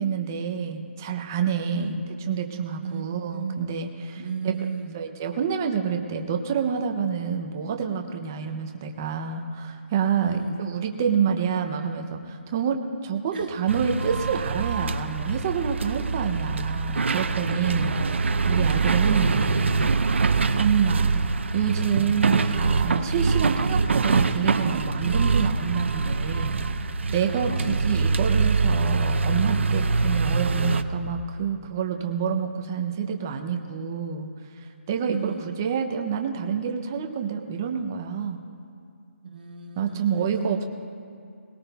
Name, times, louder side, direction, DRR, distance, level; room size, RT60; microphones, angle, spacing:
voice 1, 0.0-2.0 2.3-4.6 4.9-17.9 18.4-19.9 20.6-21.2 21.5-26.6 27.1-34.3 34.9-38.4 39.8-40.6, right 7 dB, 15° right, 4 dB, 0.5 m, -27 dB
voice 2, 1.7-2.0 2.8-3.7 4.2-5.0 10.2-10.6 13.3-13.5 17.6-18.3 27.5-27.8 35.0-35.5 39.2-40.7, right 6 dB, 45° right, 2 dB, 1.5 m, -34 dB
sound 1, 13.7-30.8, right 4 dB, 60° right, 0.6 m, -24 dB
20.5 x 18.0 x 2.3 m, 2.5 s
hypercardioid pair, 175°, 7 cm